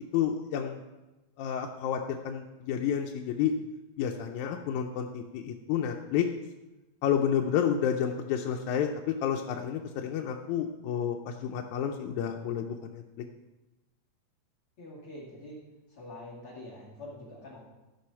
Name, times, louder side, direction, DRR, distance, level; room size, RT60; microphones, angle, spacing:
voice 1, 0.1-0.8 1.4-3.5 4.0-6.3 7.0-8.9 9.2-13.0, left 8 dB, 85° left, 2 dB, 2.0 m, -30 dB
voice 2, 14.8-15.6 16.0-17.6, left 1 dB, 50° left, -6 dB, 3.0 m, -45 dB
13.5 x 5.5 x 5.6 m, 1.1 s
omnidirectional pair, 3.3 m